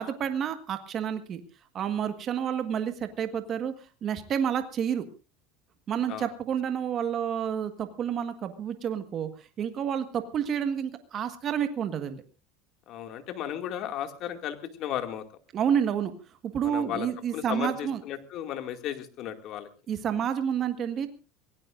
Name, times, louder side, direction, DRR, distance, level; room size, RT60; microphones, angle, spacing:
voice 1, 0.0-1.4 1.7-3.7 4.0-5.0 5.9-12.2 15.5-16.1 16.4-18.0 19.9-21.1, right 8 dB, 40° right, 8 dB, 1.5 m, -29 dB
voice 2, 12.9-15.3 16.6-19.7, left 10 dB, 55° left, 7 dB, 2.3 m, -35 dB
25.0 x 18.0 x 2.6 m, 0.33 s
supercardioid pair, 115°, 0 cm